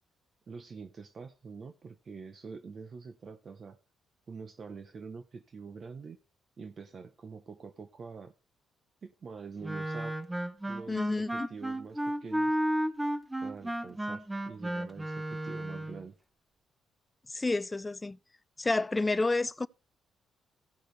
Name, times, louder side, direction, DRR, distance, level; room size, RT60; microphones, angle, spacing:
voice 1, 0.5-3.8 4.3-6.2 6.6-8.3 9.0-10.2 10.7-12.6 13.4-16.1, right 5 dB, 45° right, 0.8 m, -45 dB
Wind instrument woodwind instrument, 9.6-16.0, right 1 dB, 10° right, 0.9 m, -33 dB
voice 2, 10.9-11.5 17.3-18.2 18.6-19.7, left 2 dB, 20° left, 0.4 m, -29 dB
15.5 x 6.4 x 3.3 m
cardioid pair, 90°, 0 cm